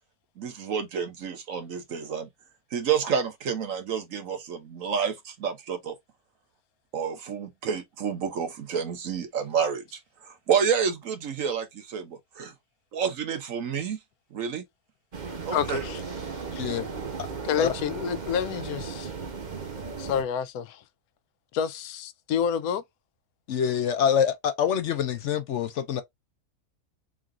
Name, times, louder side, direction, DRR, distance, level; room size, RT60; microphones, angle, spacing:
voice 1, 0.4-2.3 2.7-5.9 6.9-12.5 12.9-14.0 14.3-14.6 15.4-15.8, right 7 dB, 65° right, 1.3 m, -29 dB
sound 1, 15.1-20.2, right 5 dB, 35° right, 1.0 m, -36 dB
voice 2, 15.5-16.0 16.5-16.6 17.4-19.1 20.0-20.8 21.5-22.8, left 8 dB, 90° left, 1.1 m, -28 dB
voice 3, 23.5-26.0, left 8 dB, 65° left, 0.8 m, -25 dB
3.8 x 2.4 x 3.6 m
omnidirectional pair, 1.5 m